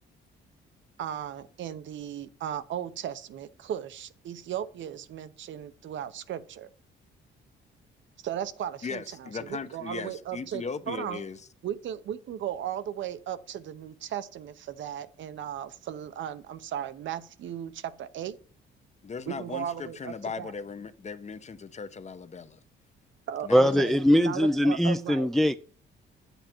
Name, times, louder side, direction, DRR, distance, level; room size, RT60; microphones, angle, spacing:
voice 1, 1.0-6.7 8.2-11.2 11.6-18.4 19.3-20.5 23.3-25.3, right 10 dB, 70° right, 0.8 m, -36 dB
voice 2, 8.8-11.4 19.0-22.6 23.4-23.9, left 5 dB, 35° left, 0.9 m, -38 dB
voice 3, 23.5-25.6, equal, ahead, 0.4 m, -22 dB
8.8 x 8.1 x 4.5 m
cardioid pair, 90°, 20 cm